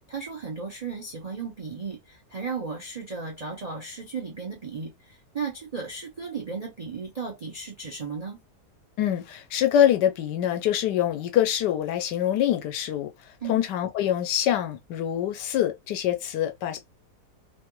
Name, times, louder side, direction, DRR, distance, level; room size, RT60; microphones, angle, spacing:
voice 1, 0.1-8.4 13.4-13.6, right 5 dB, 75° right, 0.3 m, -35 dB
voice 2, 9.0-13.1 13.5-16.9, left 11 dB, 85° left, 1.3 m, -25 dB
3.1 x 2.2 x 2.9 m
omnidirectional pair, 1.8 m